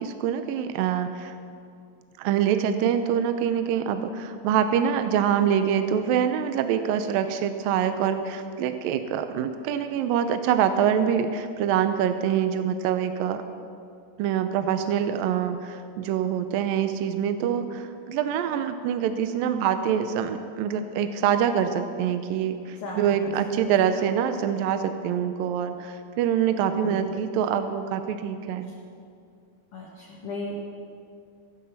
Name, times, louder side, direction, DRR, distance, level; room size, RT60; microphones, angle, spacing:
voice 1, 0.0-1.4 2.2-13.4 14.2-28.7, right 8 dB, 80° right, 9 dB, 2.3 m, -25 dB
voice 2, 22.8-23.3 23.6-23.7 26.7-27.1 29.7-30.6, left 1 dB, 50° left, -3 dB, 2.0 m, -36 dB
15.0 x 12.0 x 7.2 m, 2.4 s
omnidirectional pair, 4.4 m